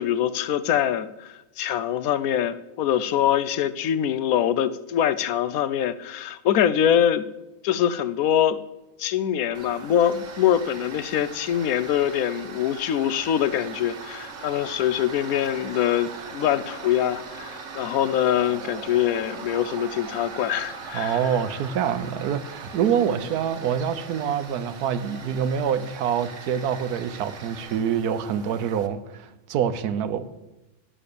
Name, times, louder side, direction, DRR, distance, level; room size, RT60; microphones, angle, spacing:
voice 1, 0.0-7.3 7.6-8.6 9.0-21.2, left 10 dB, 75° left, 15 dB, 1.0 m, -24 dB
Tools, 9.5-28.9, right 5 dB, 55° right, 1.2 m, -40 dB
voice 2, 20.9-30.2, right 8 dB, 90° right, 12 dB, 1.3 m, -26 dB
11.0 x 7.7 x 6.7 m, 1.0 s
omnidirectional pair, 1.6 m